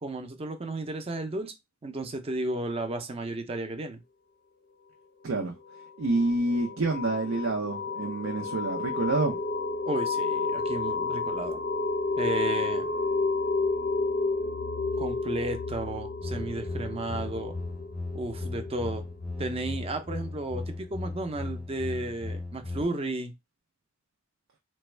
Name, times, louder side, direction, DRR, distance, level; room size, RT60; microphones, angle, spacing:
voice 1, 0.0-1.5 1.8-4.0 9.9-11.6 12.2-12.9 15.0-17.5 18.1-19.0 19.4-23.3, right 2 dB, 30° right, 0.5 m, -33 dB
voice 2, 5.2-5.5 6.0-9.4, right 2 dB, 90° right, 0.6 m, -28 dB
sound 1, 5.7-20.1, left 3 dB, 45° left, 0.4 m, -31 dB
sound 2, 16.2-22.8, left 2 dB, ahead, 0.8 m, -37 dB
3.3 x 2.2 x 3.1 m
head